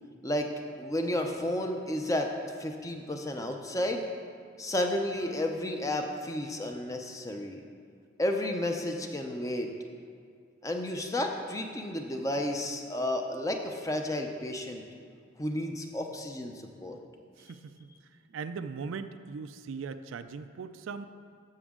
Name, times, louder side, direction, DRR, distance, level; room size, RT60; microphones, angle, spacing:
voice 1, 0.8-2.3 2.6-4.0 4.6-7.6 8.2-9.7 10.6-14.8 15.4-17.0, left 1 dB, 15° left, 3 dB, 0.6 m, -32 dB
voice 2, 17.4-17.9 18.3-21.0, right 5 dB, 70° right, 10 dB, 0.4 m, -39 dB
13.0 x 6.2 x 3.7 m, 2.2 s
head